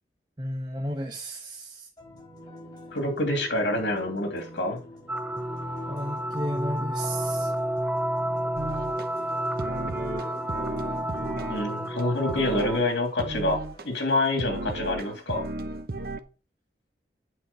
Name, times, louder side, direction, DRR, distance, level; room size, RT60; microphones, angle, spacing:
voice 1, 0.4-1.9 5.9-7.5, equal, 25° right, 1 dB, 1.1 m, -33 dB
sound 1, 2.0-14.6, left 1 dB, 25° left, 4.2 m, -45 dB
voice 2, 2.9-4.8 11.5-13.6 13.8-15.4, left 1 dB, 85° left, 4 dB, 2.8 m, -27 dB
sound 2, 5.1-12.8, right 1 dB, 5° right, 0.3 m, -30 dB
sound 3, 8.5-9.1 9.6-11.7 12.0-12.1 12.3-12.9 13.2-13.8 14.4-16.2, right 2 dB, 55° right, 0.8 m, -34 dB
8.5 x 4.9 x 5.6 m, 0.34 s
head